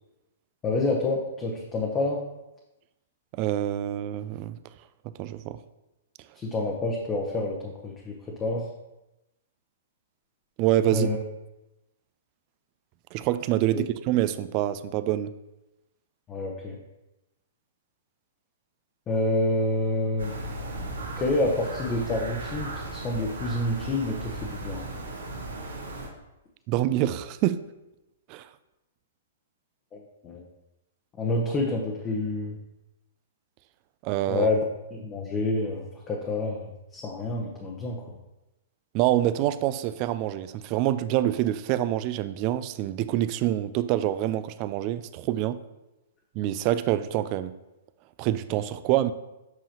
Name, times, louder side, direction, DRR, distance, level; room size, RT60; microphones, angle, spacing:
voice 1, 0.6-2.2 6.3-8.7 10.9-11.2 13.7-13.8 16.3-16.8 19.1-20.3 21.2-24.9 29.9-30.4 31.2-32.6 34.3-34.6 34.9-36.7 36.9-38.0, left 2 dB, 25° left, -1 dB, 1.0 m, -28 dB
voice 2, 3.3-4.6 5.2-5.6 10.6-11.1 13.1-15.3 26.7-27.6 28.3-28.5 34.0-34.5 38.9-45.6 46.4-47.6 48.2-49.1, right 13 dB, 40° right, 14 dB, 0.4 m, -26 dB
sound 1, 20.2-26.1, right 2 dB, 85° right, 1.4 m, -36 dB
7.7 x 5.5 x 3.0 m, 0.96 s
hypercardioid pair, 120°, 0 cm